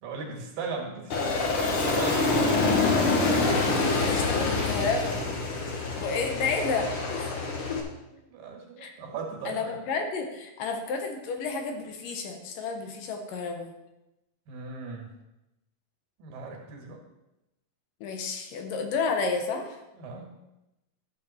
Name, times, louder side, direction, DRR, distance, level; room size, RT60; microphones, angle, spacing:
voice 1, 0.0-2.7 8.1-9.8 14.5-15.1 16.2-17.0 20.0-20.4, right 4 dB, 75° right, 1 dB, 3.4 m, -38 dB
Aircraft, 1.1-7.8, left 3 dB, 55° left, 1.6 m, -26 dB
voice 2, 3.9-7.4 7.7-7.8 8.8-8.9 9.5-13.7 18.0-19.8, left 4 dB, 75° left, 4 dB, 2.8 m, -31 dB
12.0 x 7.0 x 4.3 m, 0.94 s
omnidirectional pair, 4.0 m